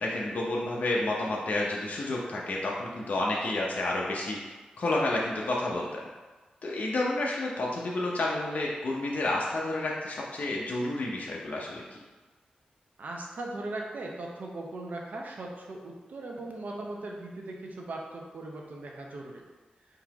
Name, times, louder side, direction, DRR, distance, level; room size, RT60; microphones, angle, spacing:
voice 1, 0.0-4.4 4.8-6.0 6.6-11.8, left 2 dB, 60° left, -3 dB, 0.6 m, -30 dB
voice 2, 13.0-19.4, right 2 dB, 70° right, 0 dB, 0.7 m, -39 dB
3.8 x 2.8 x 4.7 m, 1.3 s
cardioid pair, 75°, 3 cm